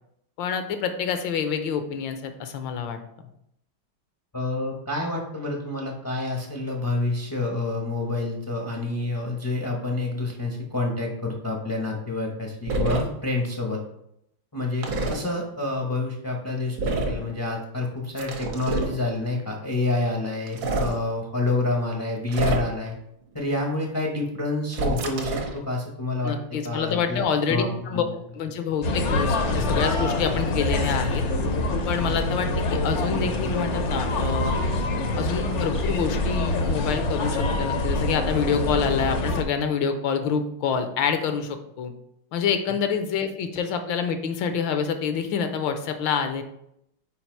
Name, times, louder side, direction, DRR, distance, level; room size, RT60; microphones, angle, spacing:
voice 1, 0.4-3.0 26.2-28.0 28.3-31.2 31.8-34.6 35.2-41.9 42.3-46.4, left 6 dB, 80° left, 8 dB, 1.4 m, -27 dB
voice 2, 4.3-13.8 14.5-22.9 23.3-26.4 26.6-27.2 27.5-27.7 27.9-28.0, left 2 dB, 30° left, 0 dB, 0.3 m, -28 dB
sound 1, 12.7-13.0 14.8-15.2 16.8-17.2 18.2-18.9 20.5-20.9 22.3-22.9 24.7-25.6, right 2 dB, 75° right, 1.7 m, -26 dB
sound 2, 28.8-39.4, left 2 dB, 60° left, 0.7 m, -25 dB
5.6 x 4.6 x 4.5 m, 0.77 s
omnidirectional pair, 2.1 m